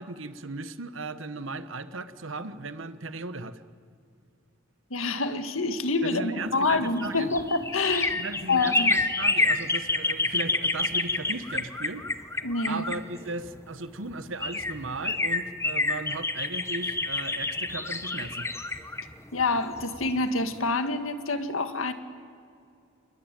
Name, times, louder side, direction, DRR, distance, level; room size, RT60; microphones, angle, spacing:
voice 1, 0.0-3.6 6.0-7.3 8.1-12.0 12.7-18.5, right 3 dB, 75° right, 12 dB, 1.2 m, -37 dB
voice 2, 4.9-8.2 8.5-8.9 12.4-12.9 19.3-21.9, left 3 dB, 90° left, 9 dB, 1.8 m, -27 dB
sound 1, 6.7-13.5 14.1-14.2 14.4-20.2 20.5-20.6, left 3 dB, 15° left, 1.0 m, -28 dB
29.0 x 21.0 x 9.1 m, 2.4 s
head